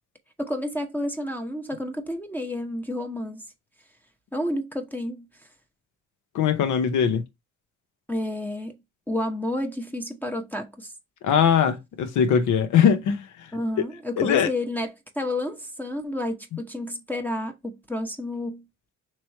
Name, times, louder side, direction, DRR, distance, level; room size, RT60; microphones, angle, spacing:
voice 1, 0.4-3.4 4.3-5.3 8.1-8.7 9.1-10.9 13.5-18.6, left 1 dB, 5° left, 0.7 m, -30 dB
voice 2, 6.3-7.2 11.2-13.2 14.2-14.5, left 7 dB, 75° left, 0.8 m, -21 dB
3.0 x 3.0 x 4.5 m
cardioid pair, 90°, 30 cm